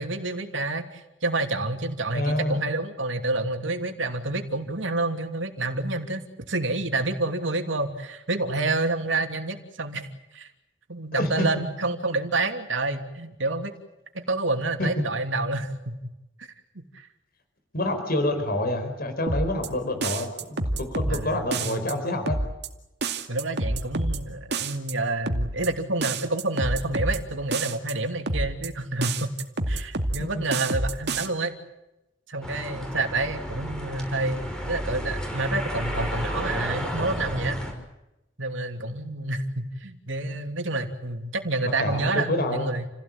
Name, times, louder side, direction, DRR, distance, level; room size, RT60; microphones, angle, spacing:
voice 1, 0.0-10.5 10.9-13.7 14.1-16.0 16.4-16.5 16.7-17.1 21.1-21.9 23.3-29.3 29.7-31.5 32.3-37.6 38.4-42.9, right 2 dB, 80° right, 6 dB, 3.0 m, -28 dB
voice 2, 2.1-2.6 11.1-11.7 14.8-14.9 17.7-22.4 41.6-42.7, left 1 dB, 55° left, 6 dB, 4.9 m, -27 dB
sound 1, 19.3-19.7 20.0-21.2 21.5-21.9 22.3-22.7 23.0-24.2 24.5-24.9 25.3-25.7 26.0-27.2 27.5-27.9 28.3-28.7 29.0-30.2 30.5-31.3, right 2 dB, 60° right, 2.3 m, -27 dB
sound 2, 32.4-37.7, equal, 5° left, 5.9 m, -32 dB
29.5 x 17.0 x 8.9 m, 0.94 s
head